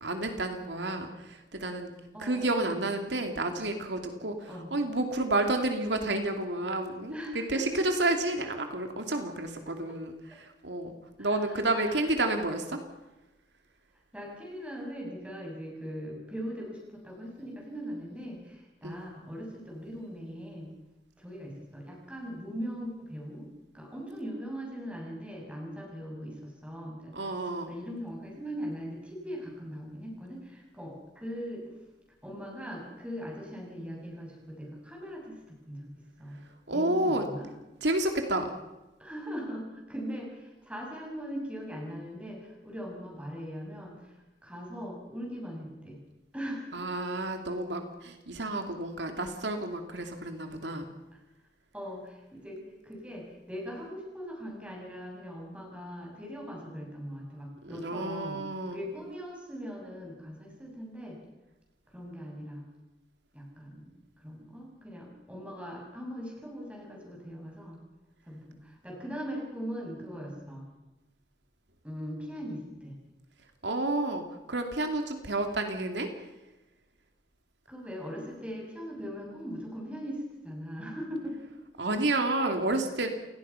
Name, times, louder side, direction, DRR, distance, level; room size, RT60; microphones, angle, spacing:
voice 1, 0.0-1.9 2.2-7.1 7.5-12.8 18.8-19.0 27.1-27.7 36.7-37.3 37.8-38.5 46.7-50.9 57.6-58.8 73.6-76.1 81.8-83.1, right 2 dB, 85° right, 5 dB, 2.6 m, -30 dB
voice 2, 2.1-2.8 4.5-4.7 7.1-7.8 9.6-9.7 11.2-12.0 14.1-20.7 21.2-23.5 23.7-31.6 32.2-35.9 36.2-36.4 36.7-37.5 39.0-44.1 44.4-46.0 46.3-46.7 51.7-58.4 58.7-61.2 61.9-62.6 63.3-67.8 68.3-70.6 71.8-73.0 77.7-81.5, equal, 5° right, -1 dB, 7.2 m, -40 dB
28.5 x 18.5 x 5.8 m, 1.0 s
head